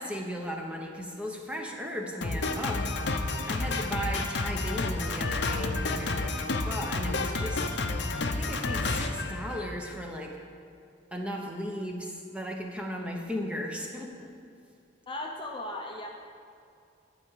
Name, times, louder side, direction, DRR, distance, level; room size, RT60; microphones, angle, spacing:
voice 1, 0.0-2.9 3.3-7.6 8.3-10.4 11.1-14.4, equal, 5° right, 0 dB, 0.9 m, -36 dB
Drum kit, 2.2-10.0, left 3 dB, 60° left, 0.7 m, -30 dB
voice 2, 15.1-16.1, left 1 dB, 25° left, 1 dB, 0.7 m, -36 dB
11.5 x 5.0 x 8.3 m, 2.4 s
head